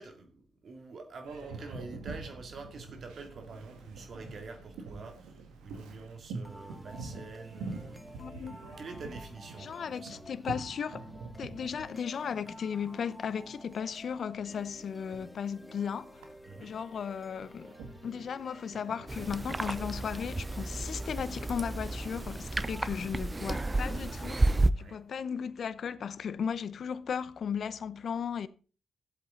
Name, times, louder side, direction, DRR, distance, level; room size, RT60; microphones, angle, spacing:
voice 1, 0.0-8.3 8.8-10.2 16.5-16.7 24.7-25.0, right 4 dB, 60° right, 2.4 m, -46 dB
Boat Water vehicle, 1.2-20.3, right 3 dB, 85° right, 1.7 m, -47 dB
sound 1, 6.4-22.4, equal, ahead, 1.2 m, -52 dB
voice 2, 8.2-8.5 9.6-11.0 11.4-16.2 16.6-17.8 18.0-28.5, left 7 dB, 65° left, 0.7 m, -36 dB
sound 2, 19.1-24.7, right 2 dB, 25° right, 0.6 m, -31 dB
13.0 x 7.9 x 3.9 m
supercardioid pair, 50°, 0 cm